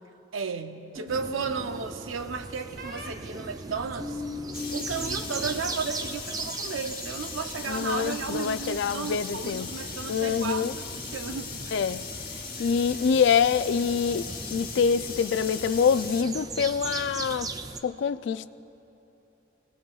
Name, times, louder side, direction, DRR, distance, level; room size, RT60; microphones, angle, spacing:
voice 1, 0.3-4.2 4.7-11.5 12.6-12.7, right 5 dB, 85° right, 0.7 m, -34 dB
sound 1, 1.0-1.8 2.8-3.1 3.7-5.2 5.5-6.1, left 3 dB, 55° right, 1.3 m, -39 dB
sound 2, 1.1-17.8, right 3 dB, 20° right, 0.3 m, -39 dB
sound 3, 4.5-16.2, left 5 dB, 45° left, 1.1 m, -39 dB
voice 2, 7.7-9.7 10.1-10.8 11.7-12.1 12.6-17.5 17.8-18.5, left 6 dB, 65° left, 0.3 m, -25 dB
23.5 x 18.0 x 2.3 m
head